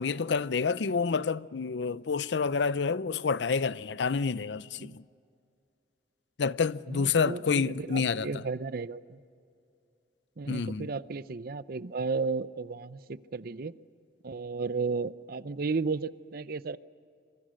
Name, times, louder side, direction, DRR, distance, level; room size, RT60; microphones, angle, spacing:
voice 1, 0.0-5.0 6.4-8.3 10.5-10.9, left 5 dB, 80° left, 0.5 m, -28 dB
voice 2, 6.9-9.2 10.4-13.8 14.2-16.8, right 4 dB, 60° right, 0.6 m, -34 dB
26.0 x 24.5 x 6.4 m
head